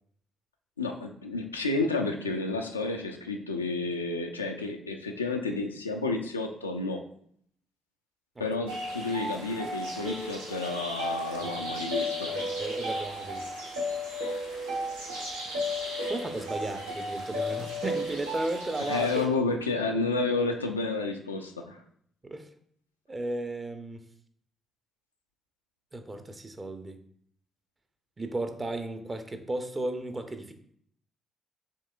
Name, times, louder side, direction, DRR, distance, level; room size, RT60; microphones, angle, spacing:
voice 1, 0.8-7.0 8.4-12.3 18.9-21.8, left 3 dB, 90° left, 3 dB, 0.3 m, -30 dB
sound 1, 8.7-19.3, equal, 85° right, 0.8 m, -34 dB
voice 2, 11.4-11.8 12.3-13.5 16.1-19.1 22.2-22.5 23.1-24.0 25.9-27.0 28.2-30.5, right 2 dB, 25° right, 8 dB, 0.6 m, -35 dB
6.5 x 3.2 x 2.4 m, 0.64 s
figure-of-eight pair, 40°, 0 cm